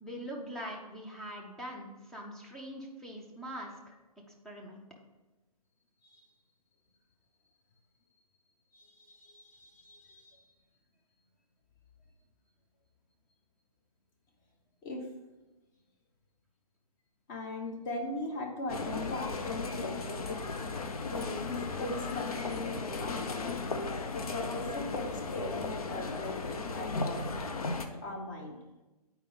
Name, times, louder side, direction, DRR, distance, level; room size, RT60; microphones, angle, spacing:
voice 1, 0.0-4.0 4.4-4.8, equal, ahead, -1 dB, 0.4 m, -43 dB
voice 2, 8.7-10.4 14.8-15.1 17.3-20.4 21.1-23.6 24.1-27.4 28.0-28.6, left 2 dB, 30° left, 2 dB, 1.2 m, -39 dB
sound 1, 18.7-27.9, left 3 dB, 65° left, 0.8 m, -36 dB
8.3 x 4.6 x 3.6 m, 1.1 s
hypercardioid pair, 150°, 20 cm